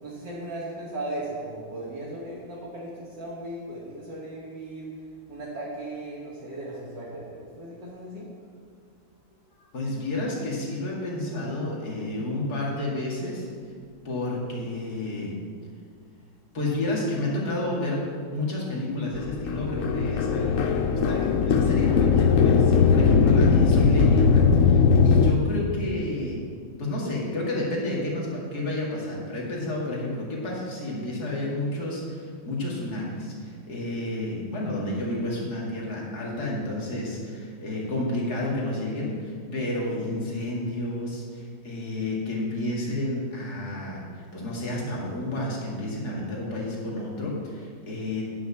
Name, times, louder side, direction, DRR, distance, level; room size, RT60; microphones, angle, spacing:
voice 1, 0.0-4.9 5.3-8.3, right 1 dB, 65° right, -7 dB, 2.5 m, -37 dB
voice 2, 9.7-13.5 14.0-15.3 16.5-18.0 18.3-26.5 26.8-48.3, left 1 dB, 50° left, -4 dB, 2.7 m, -30 dB
sound 1, 19.1-25.3, left 5 dB, 80° left, 0.7 m, -19 dB
9.6 x 6.4 x 7.1 m, 2.1 s
omnidirectional pair, 2.1 m